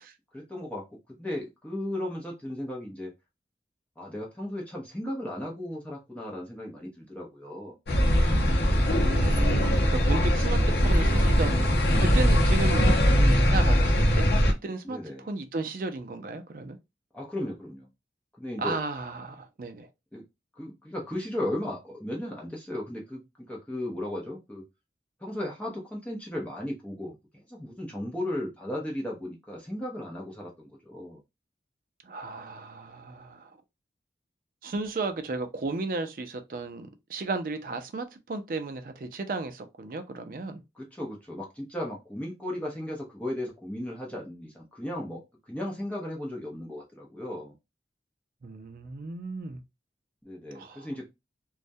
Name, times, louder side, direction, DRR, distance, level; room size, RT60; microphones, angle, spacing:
voice 1, 0.3-3.1 4.0-7.8 14.8-15.3 17.1-17.9 18.4-18.8 20.1-20.2 20.6-23.2 23.5-24.6 25.2-27.2 27.5-31.2 40.8-45.2 45.5-47.5 50.2-51.1, left 1 dB, 10° left, 0.6 m, -35 dB
sound 1, 7.9-14.5, equal, 70° left, 0.6 m, -21 dB
voice 2, 9.0-11.7 12.0-16.8 18.6-19.9 32.0-33.5 34.6-40.6 48.4-49.6 50.5-50.9, right 3 dB, 50° right, 0.4 m, -34 dB
2.2 x 2.1 x 2.6 m
head